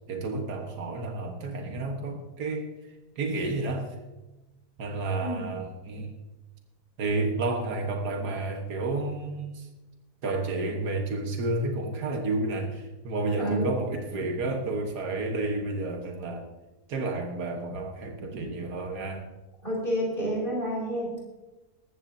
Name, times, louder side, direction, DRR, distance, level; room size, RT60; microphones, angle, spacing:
voice 1, 0.1-2.7 3.2-4.0 4.8-6.1 7.0-9.7 10.2-16.5 16.9-19.3, right 2 dB, 90° right, 3 dB, 1.9 m, -31 dB
voice 2, 13.4-13.7 19.6-21.3, equal, 30° left, -2 dB, 5.3 m, -29 dB
19.5 x 14.5 x 2.7 m, 1.1 s
omnidirectional pair, 1.7 m